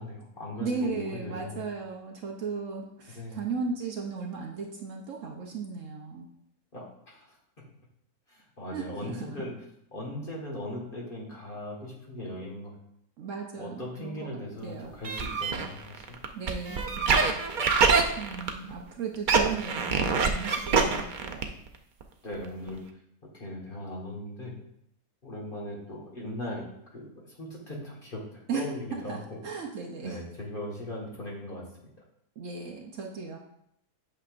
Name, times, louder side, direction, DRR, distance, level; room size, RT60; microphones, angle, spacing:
voice 1, 0.0-1.6 3.1-3.4 6.7-7.3 8.3-9.5 9.9-12.7 13.6-16.2 17.6-17.7 22.2-22.8 23.3-24.5 25.2-26.6 26.9-29.4 30.0-31.9, left 1 dB, 35° left, -3 dB, 1.7 m, -39 dB
voice 2, 0.6-6.3 8.7-9.3 13.2-14.9 16.3-17.4 18.2-21.5 28.5-29.2 29.4-30.2 32.4-33.4, right 5 dB, 60° right, 1 dB, 1.0 m, -36 dB
sound 1, 15.0-18.8 19.1-21.7 22.0-22.1 22.3-22.4 22.7-22.8, right 5 dB, 80° right, 0.4 m, -25 dB
8.7 x 5.7 x 2.5 m, 0.75 s
omnidirectional pair, 1.6 m